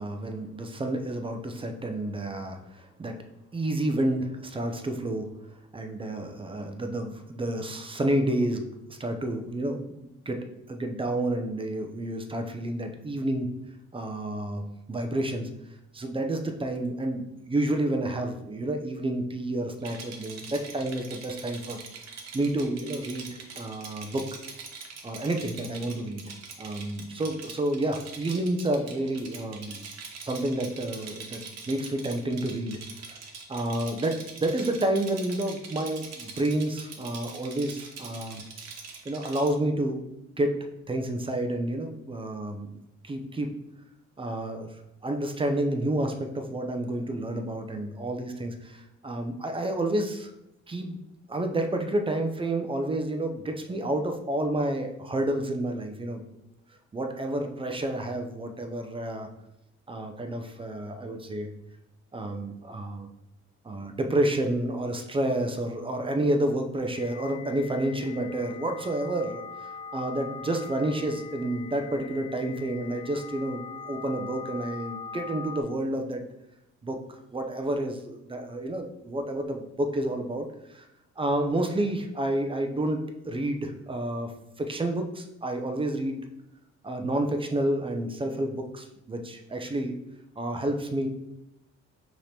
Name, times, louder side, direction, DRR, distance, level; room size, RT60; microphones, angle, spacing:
voice 1, 0.0-3.2 3.5-5.3 5.7-8.6 8.9-13.5 13.9-15.5 15.9-21.8 22.3-24.3 25.0-26.3 26.6-29.9 30.2-32.8 33.1-33.2 33.5-38.4 39.1-40.1 40.4-40.6 40.9-42.7 43.0-43.5 44.2-44.8 45.0-50.3 50.7-51.0 51.3-56.2 56.9-59.3 59.9-61.5 62.1-63.1 63.6-69.4 69.9-76.2 76.8-77.0 77.3-80.5 80.7-80.8 81.2-84.3 84.6-86.2 86.8-89.9 90.4-91.1, right 1 dB, 20° right, 5 dB, 0.4 m, -30 dB
Rattle, 19.8-39.5, right 5 dB, 60° right, 0.8 m, -43 dB
sound 1, 66.9-75.6, left 4 dB, 80° left, 0.5 m, -41 dB
4.9 x 2.9 x 2.7 m, 0.88 s
cardioid pair, 90°, 30 cm